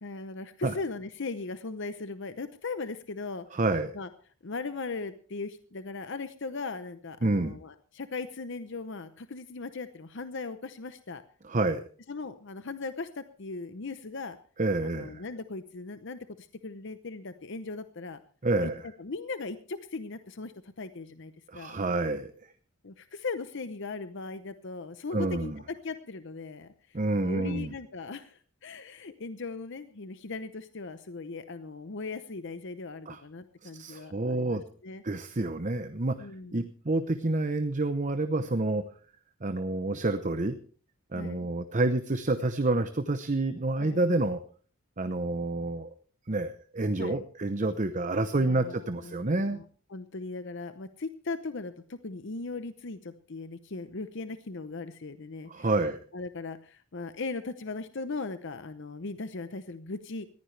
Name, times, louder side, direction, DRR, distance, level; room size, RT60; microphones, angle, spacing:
voice 1, 0.0-3.6 3.9-4.1 4.4-11.2 12.1-14.4 14.8-18.2 18.6-21.8 22.8-35.0 36.2-36.7 41.1-41.5 43.8-44.0 47.0-47.2 48.3-49.6 49.9-55.8 56.1-60.3, left 3 dB, 60° left, 11 dB, 0.8 m, -38 dB
voice 2, 3.5-3.9 7.2-7.6 11.4-11.8 14.6-15.2 18.4-18.8 21.5-22.3 25.1-25.6 26.9-27.7 33.1-33.2 33.6-34.6 35.0-38.8 39.4-40.6 41.1-44.4 45.0-45.9 46.3-49.6 55.5-56.0, right 2 dB, 35° right, 9 dB, 0.8 m, -28 dB
20.5 x 15.0 x 3.3 m, 0.43 s
head